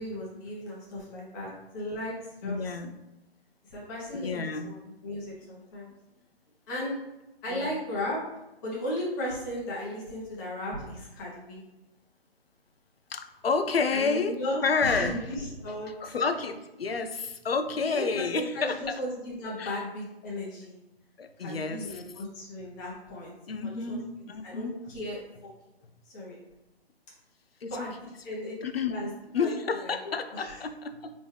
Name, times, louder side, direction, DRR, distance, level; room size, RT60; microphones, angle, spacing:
voice 1, 0.0-2.1 2.4-2.8 3.7-5.9 6.7-7.0 7.4-8.2 8.6-11.6 13.9-16.1 17.8-20.7 21.4-23.3 23.7-24.0 24.4-25.2 26.0-26.4 27.7-27.9 28.2-28.5 28.9-29.9 30.3-30.6, left 1 dB, 20° left, -5 dB, 1.0 m, -36 dB
voice 2, 2.4-2.9 4.1-4.7 7.5-7.7 13.1-14.4 14.6-15.2 16.0-19.0 19.6-19.8 21.2-22.0 23.5-24.7 27.6-27.7 28.6-29.1 29.3-31.1, left 4 dB, 70° left, 8 dB, 0.5 m, -30 dB
4.5 x 3.1 x 3.3 m, 0.96 s
figure-of-eight pair, 140°, 31 cm